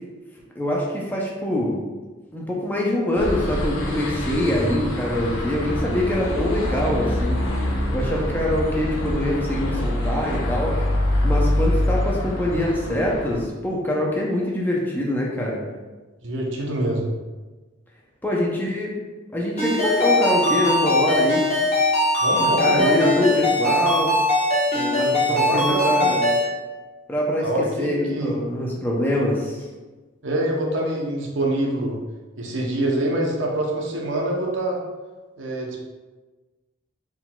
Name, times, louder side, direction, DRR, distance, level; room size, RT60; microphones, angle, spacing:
voice 1, 0.6-1.8 2.3-7.4 7.9-10.7 11.2-15.6 18.2-19.0 19.3-21.5 22.4-24.1 24.7-26.3 27.1-27.5 27.8-29.6, left 1 dB, 10° left, -3 dB, 0.5 m, -24 dB
sound 1, 3.2-13.4, left 1 dB, 80° left, 0.8 m, -25 dB
voice 2, 16.2-17.1 22.2-23.3 25.3-26.0 27.4-28.3 30.2-32.0 32.4-34.8 35.4-35.8, right 1 dB, 65° right, -1 dB, 0.8 m, -25 dB
Ringtone, 19.6-26.4, left 1 dB, 30° left, 1.0 m, -21 dB
4.5 x 3.8 x 2.3 m, 1.2 s
head